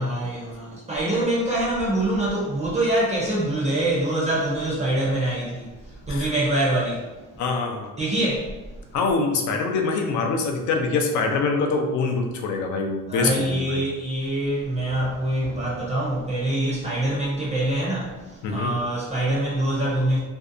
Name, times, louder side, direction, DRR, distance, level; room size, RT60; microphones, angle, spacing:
voice 1, 0.0-7.1 8.0-8.6 13.1-20.2, right 1 dB, 20° right, -6 dB, 0.5 m, -25 dB
voice 2, 7.4-8.0 8.9-13.8 18.4-18.8, left 4 dB, 60° left, 3 dB, 0.5 m, -24 dB
2.6 x 2.1 x 2.5 m, 1.1 s
cardioid pair, 120°, 33 cm